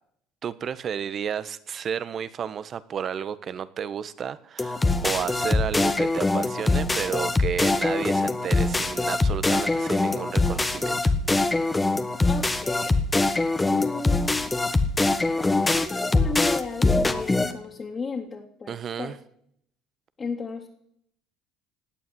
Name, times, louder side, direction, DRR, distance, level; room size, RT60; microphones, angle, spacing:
voice 1, 0.4-11.1 18.7-19.2, right 8 dB, 45° right, 15 dB, 1.3 m, -32 dB
sound 1, 4.6-17.5, left 2 dB, 15° left, 1.7 m, -23 dB
voice 2, 12.3-13.0 13.6-14.5 15.3-19.2 20.2-20.7, left 5 dB, 35° left, -3 dB, 3.1 m, -33 dB
17.5 x 8.7 x 9.5 m, 0.70 s
hypercardioid pair, 75°, 0 cm